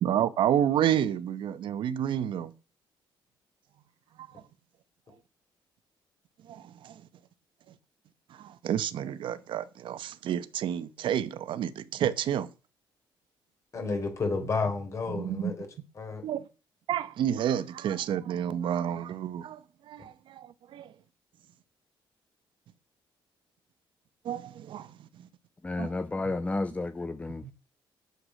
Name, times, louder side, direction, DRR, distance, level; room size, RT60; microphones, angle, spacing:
voice 1, 0.0-2.5 4.2-4.3 6.5-7.0 8.3-12.5 15.1-15.5 16.2-16.4 16.9-20.9 24.2-24.9 25.8-25.9, right 10 dB, 70° right, 0.9 m, -30 dB
voice 2, 13.7-15.7 16.0-16.2, left 4 dB, 35° left, 3.7 m, -31 dB
voice 3, 25.6-27.5, left 2 dB, 15° left, 0.6 m, -32 dB
9.4 x 8.1 x 6.3 m
cardioid pair, 135°, 9 cm